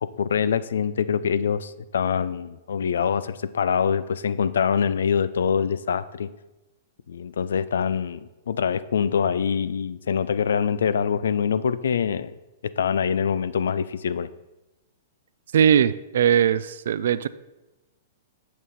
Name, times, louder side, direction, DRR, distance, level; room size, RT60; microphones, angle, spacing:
voice 1, 0.0-6.3 7.1-8.2 8.5-12.3 12.6-14.3, left 7 dB, 70° left, 15 dB, 0.3 m, -24 dB
voice 2, 15.5-17.3, right 8 dB, 65° right, 16 dB, 0.3 m, -20 dB
7.4 x 5.9 x 4.1 m, 1.0 s
hypercardioid pair, 110°, 0 cm